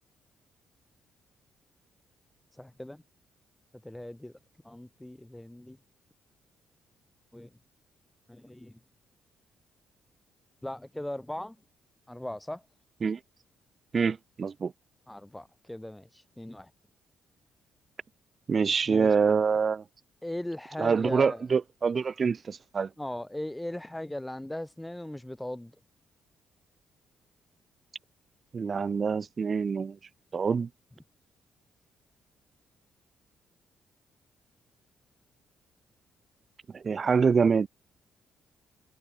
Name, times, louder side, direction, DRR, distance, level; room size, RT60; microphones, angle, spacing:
voice 1, 2.6-3.0 3.8-4.3 4.6-5.8 7.3-7.5 8.3-8.8 10.6-11.6 12.1-12.6 15.1-16.7 18.9-19.1 20.2-21.4 23.0-25.7, left 1 dB, 5° left, 6.3 m, -38 dB
voice 2, 13.9-14.7 18.5-19.8 20.8-22.9 28.5-30.0 30.3-30.7 36.7-37.7, right 5 dB, 40° right, 0.5 m, -25 dB
cardioid pair, 90°, 0 cm